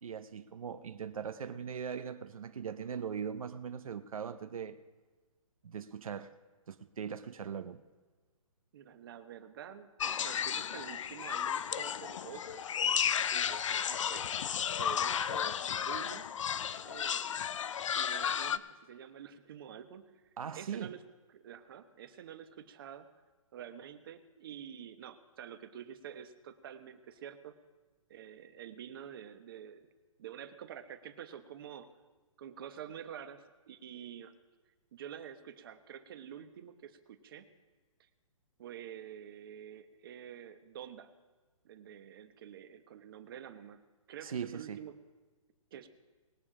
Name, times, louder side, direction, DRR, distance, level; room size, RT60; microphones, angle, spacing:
voice 1, 0.0-4.8 5.6-6.3 6.7-7.8 20.4-20.9 44.2-44.8, right 7 dB, 80° right, 0.8 m, -40 dB
voice 2, 8.7-12.6 13.3-14.3 14.8-16.3 16.8-17.3 17.9-21.0 21.3-23.1 23.5-27.5 28.1-29.9 30.2-31.9 32.4-34.3 34.9-37.5 38.0-38.1 38.6-41.1 41.6-43.8 44.1-45.0 45.7-45.9, right 9 dB, 40° right, 1.0 m, -48 dB
sound 1, 10.0-18.6, left 8 dB, 65° left, 0.6 m, -33 dB
20.5 x 7.3 x 4.9 m
hypercardioid pair, 160°, 18 cm